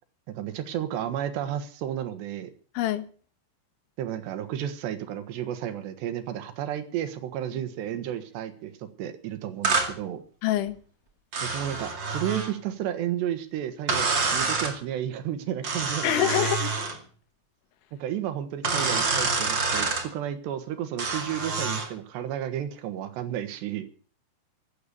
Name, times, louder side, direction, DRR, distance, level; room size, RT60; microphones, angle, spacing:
voice 1, 0.3-2.5 4.0-10.2 11.4-16.4 17.9-23.9, right 10 dB, 75° right, 3.4 m, -32 dB
voice 2, 2.8-3.1 10.4-10.8 16.0-16.7, left 12 dB, 85° left, 3.7 m, -25 dB
sound 1, 9.6-9.9 11.3-12.5 13.9-14.8 15.6-17.0 18.6-20.1 21.0-21.9, right 4 dB, 35° right, 2.0 m, -27 dB
15.5 x 10.5 x 6.9 m
omnidirectional pair, 5.3 m